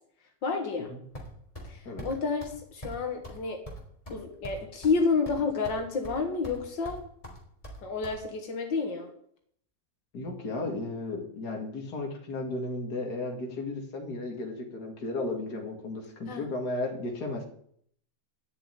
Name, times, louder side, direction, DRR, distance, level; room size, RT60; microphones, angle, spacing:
voice 1, 0.4-0.9 1.6-3.6 4.1-7.0 7.8-9.1 16.3-16.4, left 4 dB, 90° left, 4 dB, 2.3 m, -30 dB
sound 1, 1.1-1.7 2.0-2.1 2.4-2.6 2.8-3.0 3.2-3.4 3.7-5.0 5.2-5.8 6.0-6.6 6.8-8.2, equal, 20° left, 3.3 m, -42 dB
voice 2, 10.1-17.5, left 2 dB, 60° left, 2 dB, 2.7 m, -34 dB
11.5 x 6.9 x 9.2 m, 0.66 s
omnidirectional pair, 1.9 m